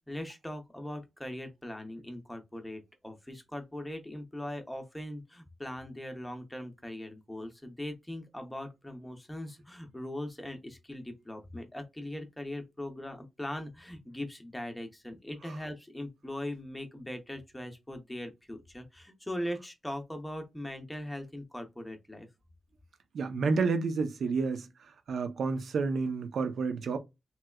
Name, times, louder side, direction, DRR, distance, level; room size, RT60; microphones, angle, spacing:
voice 1, 0.1-22.3, left 1 dB, 5° left, 0.7 m, -40 dB
voice 2, 23.1-24.7 25.1-27.0, right 4 dB, 70° right, 0.7 m, -30 dB
3.3 x 3.0 x 2.3 m
wide cardioid pair, 180°, 0 cm